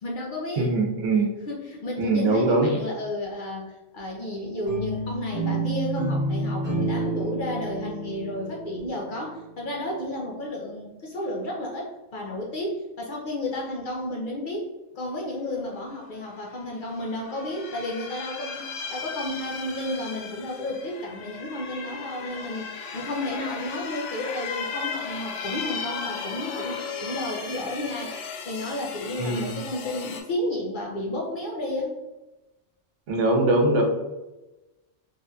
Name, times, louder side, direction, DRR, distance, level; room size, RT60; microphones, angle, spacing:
voice 1, 0.0-0.7 1.5-14.7 14.9-32.0, left 1 dB, 55° left, -2 dB, 0.6 m, -32 dB
voice 2, 0.6-1.3 2.0-2.7 29.2-29.5 33.1-33.8, right 2 dB, 80° right, 2 dB, 1.0 m, -22 dB
sound 1, 4.7-9.8, right 2 dB, 50° right, 1.4 m, -30 dB
sound 2, 16.4-16.5 16.9-30.2, left 5 dB, 85° left, 0.9 m, -36 dB
3.4 x 2.6 x 2.2 m, 1.1 s
omnidirectional pair, 1.2 m